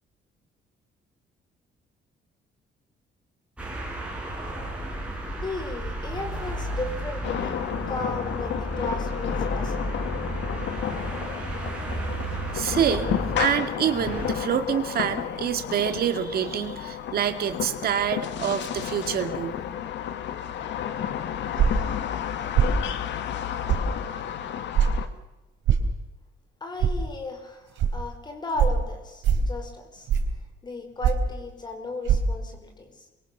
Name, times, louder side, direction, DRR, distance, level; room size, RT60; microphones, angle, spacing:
sound 1, 3.6-13.5 13.9-14.3, right 1 dB, 5° right, 6.7 m, -33 dB
voice 1, 5.3-7.6 7.9-9.7 26.6-30.1 30.6-32.9, left 2 dB, 20° left, 5 dB, 4.7 m, -35 dB
sound 2, 7.2-25.1, left 9 dB, 70° left, 1.9 m, -32 dB
voice 2, 12.5-19.6, right 8 dB, 55° right, 8 dB, 2.3 m, -26 dB
sound 3, 21.6-21.9 22.6-22.8 23.7-23.9 24.8-24.9 25.7-25.9 26.8-26.9 27.8-27.9 28.6-28.8 29.2-29.5 30.1-30.4 31.0-31.3 32.1-32.2, right 8 dB, 80° right, 3.7 m, -21 dB
27.5 x 23.5 x 6.8 m, 1.0 s
cardioid pair, 180°, 19 cm